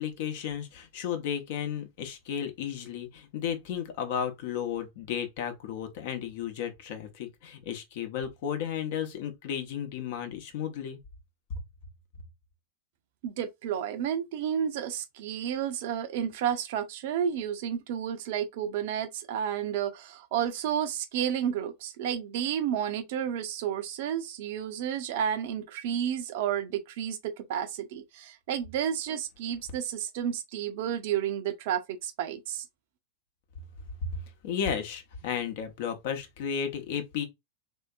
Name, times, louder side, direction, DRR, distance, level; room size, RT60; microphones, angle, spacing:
voice 1, 0.0-11.0 11.5-11.6 34.4-37.2, left 8 dB, 50° left, 0.9 m, -33 dB
voice 2, 13.2-32.7, right 9 dB, 50° right, 0.6 m, -31 dB
3.4 x 2.7 x 2.4 m
figure-of-eight pair, 90°, 0 cm